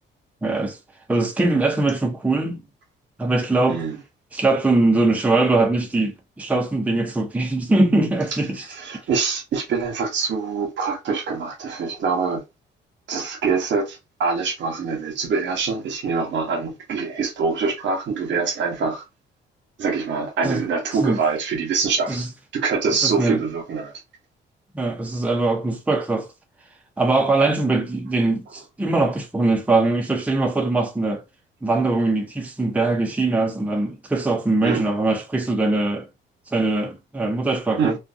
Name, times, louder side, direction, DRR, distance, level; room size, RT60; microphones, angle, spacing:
voice 1, 0.4-0.8 1.1-2.6 3.2-3.8 4.3-8.7 20.4-20.6 21.0-21.2 22.1-22.3 22.9-23.4 24.7-26.3 27.0-31.2 31.6-36.1 36.5-38.0, right 2 dB, 5° right, 0.6 m, -21 dB
voice 2, 8.7-12.4 13.1-19.0 19.8-22.3 22.5-23.9 34.6-34.8 37.8-37.9, right 5 dB, 70° right, 1.0 m, -24 dB
2.5 x 2.3 x 2.5 m
cardioid pair, 90°, 20 cm